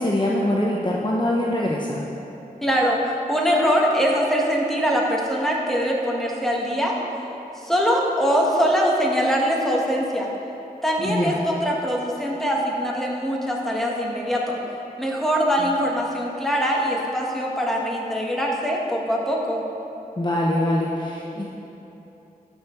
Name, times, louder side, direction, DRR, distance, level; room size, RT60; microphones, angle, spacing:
voice 1, 0.0-2.1 11.0-11.4 20.2-21.5, left 1 dB, 30° left, -3 dB, 0.9 m, -23 dB
voice 2, 2.6-7.0 7.6-10.3 10.8-14.6 15.0-19.6, equal, ahead, -3 dB, 1.7 m, -22 dB
12.5 x 5.5 x 4.6 m, 3.0 s
cardioid pair, 45°, 16 cm